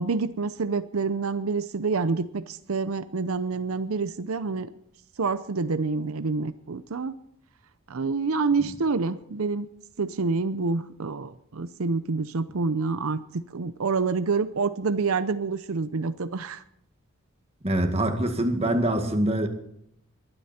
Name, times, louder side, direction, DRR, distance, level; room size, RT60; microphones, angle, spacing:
voice 1, 0.0-4.7 5.2-7.1 7.9-9.7 10.0-16.6, right 4 dB, 85° right, 12 dB, 0.7 m, -27 dB
voice 2, 17.6-19.5, right 1 dB, 30° right, 5 dB, 2.0 m, -24 dB
22.0 x 12.0 x 4.3 m, 0.73 s
head